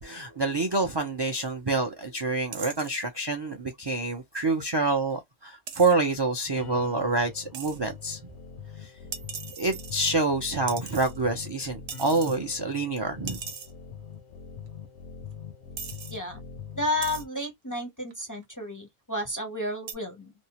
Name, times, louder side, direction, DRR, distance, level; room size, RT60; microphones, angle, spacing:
voice 1, 0.0-8.2 8.8-8.9 9.6-13.4, right 3 dB, 45° right, 0.3 m, -27 dB
sound 1, 1.3-1.5 2.5-3.0 5.7-5.9 7.5-7.8 9.1-10.3 10.7-11.5 11.9-12.4 12.7-12.8 13.3-13.7 14.7-14.8 15.3-15.4 15.8-16.2 17.0-17.2 18.1-18.4 19.9-20.0, right 7 dB, 75° right, 0.9 m, -39 dB
sound 2, 6.6-17.2, left 6 dB, 85° left, 0.9 m, -43 dB
voice 2, 16.8-20.3, left 1 dB, 25° left, 0.5 m, -32 dB
2.6 x 2.0 x 2.8 m
omnidirectional pair, 1.1 m